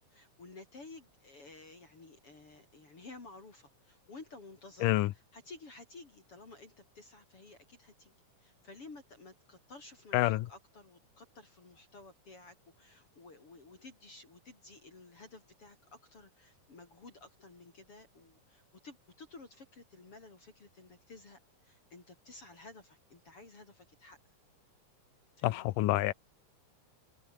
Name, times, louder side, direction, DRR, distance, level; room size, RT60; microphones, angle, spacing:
voice 1, 0.1-8.1 8.4-24.2 25.4-25.8, left 3 dB, 40° left, 5.3 m, -53 dB
voice 2, 10.1-10.5 25.4-26.1, left 16 dB, 80° left, 2.4 m, -27 dB
open air
omnidirectional pair, 3.8 m